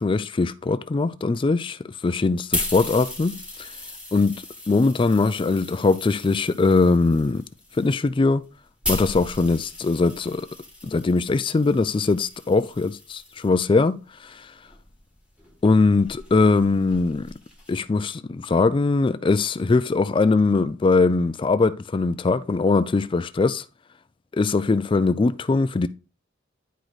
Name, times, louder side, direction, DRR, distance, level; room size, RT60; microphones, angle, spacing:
voice 1, 0.0-3.7 4.1-4.3 4.7-7.4 7.8-8.4 8.9-10.5 10.8-14.5 15.6-17.3 17.7-23.6 24.3-25.9, left 3 dB, 25° left, 0.3 m, -21 dB
sound 1, 2.1-13.5 14.3-17.8, left 1 dB, 5° right, 2.9 m, -37 dB
10.0 x 4.9 x 4.0 m
head